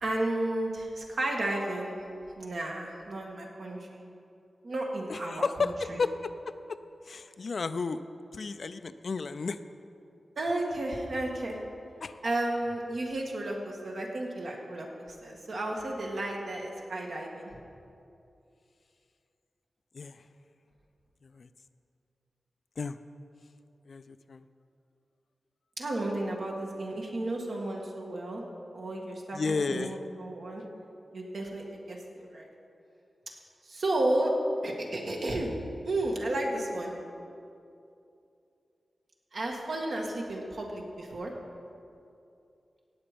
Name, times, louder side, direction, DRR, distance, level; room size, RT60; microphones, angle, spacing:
voice 1, 0.0-1.9 2.4-4.0 4.6-6.0 10.4-11.6 12.2-14.9 15.2-17.5 25.8-28.4 28.7-30.6 31.1-32.5 33.7-34.3 34.6-35.6 35.8-36.9 39.3-41.3, right 1 dB, 65° right, -1 dB, 1.9 m, -33 dB
voice 2, 5.1-6.1 6.5-6.8 7.1-8.0 8.3-9.6 12.0-12.2 19.9-20.2 21.3-21.5 22.8-23.0 23.9-24.4 29.3-30.0, left 4 dB, 55° left, 11 dB, 0.4 m, -32 dB
17.0 x 8.0 x 5.2 m, 2.6 s
wide cardioid pair, 120°, 0 cm